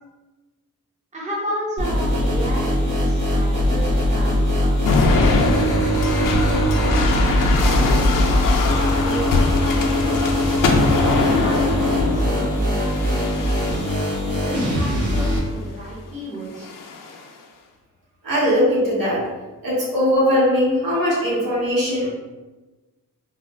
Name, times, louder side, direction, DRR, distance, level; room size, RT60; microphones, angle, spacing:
voice 1, 1.1-7.8 8.1-10.2 10.9-13.8 14.2-16.7, equal, 20° right, -6 dB, 0.7 m, -33 dB
sound 1, 1.8-15.4, equal, 60° right, 1.0 m, -21 dB
sound 2, 4.9-14.2 14.9-15.4 16.5-17.2, left 3 dB, 70° left, 0.5 m, -23 dB
voice 2, 18.2-19.2 19.6-22.1, equal, 80° right, -7 dB, 1.3 m, -20 dB
4.0 x 2.1 x 2.6 m, 1.2 s
wide cardioid pair, 165°, 34 cm